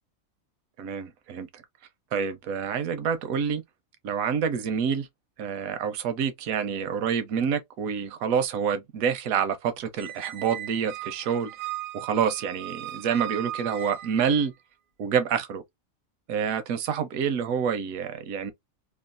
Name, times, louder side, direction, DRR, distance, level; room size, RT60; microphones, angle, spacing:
voice 1, 0.8-1.6 2.1-3.6 4.0-5.1 5.4-11.5 11.9-14.5 15.0-15.6 16.3-18.5, right 7 dB, 85° right, 1.0 m, -27 dB
Squeak, 10.0-14.5, right 13 dB, 65° right, 0.6 m, -38 dB
3.0 x 2.3 x 2.4 m
omnidirectional pair, 1.4 m